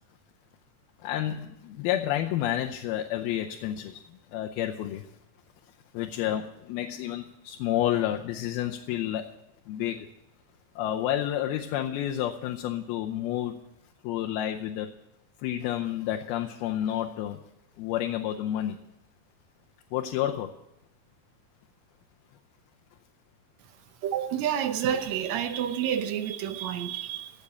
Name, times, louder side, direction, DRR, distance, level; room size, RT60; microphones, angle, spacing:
voice 1, 1.0-4.0 4.3-5.1 5.9-9.3 9.7-10.1 10.8-13.6 14.0-14.9 15.4-17.4 17.8-18.8 19.9-20.5, left 12 dB, 90° left, 2 dB, 2.7 m, -30 dB
voice 2, 24.0-27.3, right 9 dB, 75° right, 8 dB, 1.7 m, -29 dB
17.0 x 6.8 x 8.6 m, 0.84 s
omnidirectional pair, 4.2 m